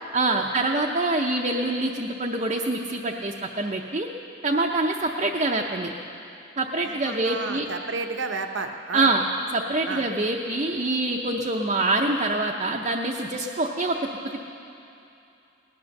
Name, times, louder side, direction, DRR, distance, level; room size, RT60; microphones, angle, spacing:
voice 1, 0.1-4.1 4.4-5.9 6.6-7.6 8.9-9.2 9.5-14.0, right 2 dB, 30° right, -1 dB, 0.7 m, -25 dB
voice 2, 6.8-9.1 9.9-10.0, right 4 dB, 60° right, 5 dB, 0.8 m, -32 dB
18.5 x 10.5 x 6.5 m, 2.7 s
head